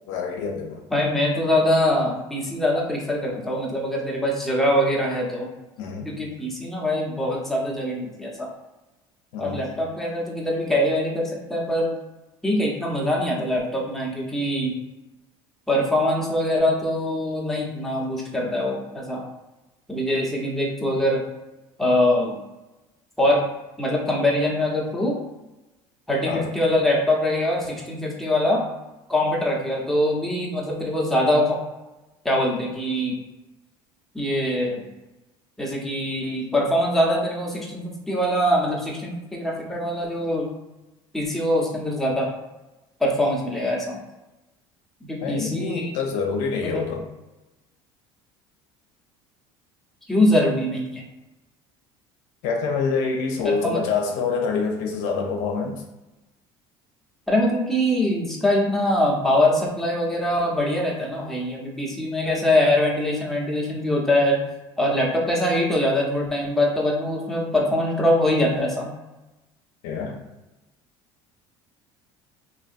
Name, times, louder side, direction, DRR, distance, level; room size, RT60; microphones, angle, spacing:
voice 1, 0.1-0.8 5.8-6.1 9.3-9.6 26.2-26.5 45.2-47.0 52.4-55.8 69.8-70.2, left 5 dB, 75° left, 1 dB, 0.6 m, -26 dB
voice 2, 0.9-5.5 6.0-8.5 9.4-11.9 12.4-14.8 15.7-19.2 19.9-21.2 21.8-22.4 23.2-23.4 23.8-25.2 26.1-28.6 29.1-31.6 32.2-33.2 34.1-34.8 35.6-40.5 41.1-42.3 43.0-44.0 45.0-45.9 46.6-46.9 50.1-51.0 53.4-53.8 57.3-64.4 64.8-68.9, left 1 dB, ahead, -3 dB, 0.8 m, -23 dB
3.0 x 2.7 x 2.5 m, 1.0 s
supercardioid pair, 100°, 12 cm